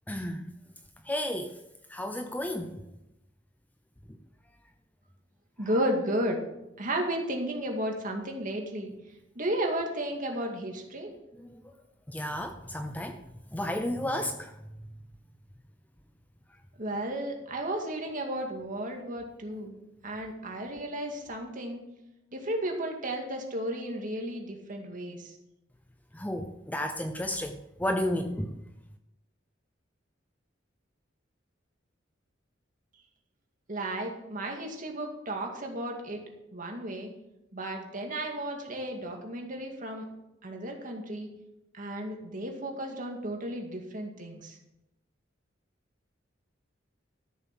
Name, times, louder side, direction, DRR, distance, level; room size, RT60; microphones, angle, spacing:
voice 1, 0.1-0.5 1.0-1.6 1.9-2.9 4.1-4.2 11.4-11.7 12.1-13.2 13.5-14.6 26.1-28.6, left 1 dB, 10° left, 7 dB, 0.6 m, -33 dB
voice 2, 5.6-6.4 6.8-8.9 9.4-11.1 16.8-21.8 22.3-25.3 33.7-36.2 36.5-37.1 37.5-40.1 40.4-41.3 41.7-44.6, right 1 dB, 45° right, 2 dB, 2.2 m, -33 dB
13.0 x 7.3 x 6.0 m, 0.90 s
head